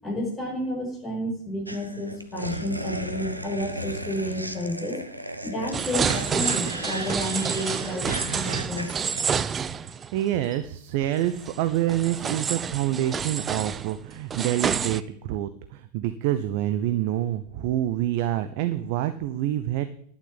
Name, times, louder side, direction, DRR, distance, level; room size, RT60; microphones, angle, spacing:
voice 1, 0.0-5.0 5.4-9.1, left 1 dB, 15° left, -1 dB, 5.7 m, -31 dB
sound 1, 1.7-9.3, right 1 dB, 85° right, 1.1 m, -35 dB
sound 2, 5.7-10.3 10.5-10.6 11.4-15.0, right 7 dB, 20° right, 0.5 m, -29 dB
voice 2, 9.8-19.8, right 13 dB, 45° right, 10 dB, 0.8 m, -27 dB
11.5 x 7.3 x 9.6 m, 0.63 s
figure-of-eight pair, 90°, 0 cm